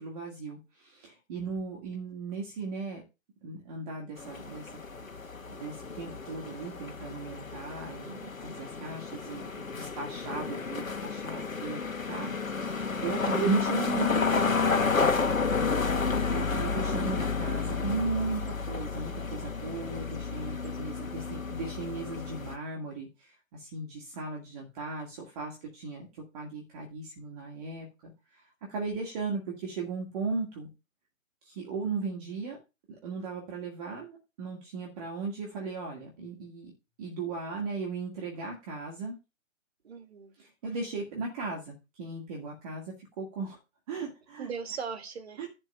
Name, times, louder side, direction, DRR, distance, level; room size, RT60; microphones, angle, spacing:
voice 1, 0.0-3.0 3.4-4.7 5.5-15.2 16.3-26.1 26.3-30.7 31.4-32.6 33.0-36.7 37.0-39.2 40.6-43.6 43.9-44.5 45.4-45.5, right 4 dB, 30° right, -1 dB, 2.1 m, -37 dB
sound 1, 4.2-22.6, left 4 dB, 75° left, 1.4 m, -31 dB
voice 2, 39.8-40.3 44.4-45.5, right 6 dB, 50° right, 6 dB, 2.2 m, -40 dB
11.0 x 4.5 x 5.5 m, 0.27 s
figure-of-eight pair, 140°, 41 cm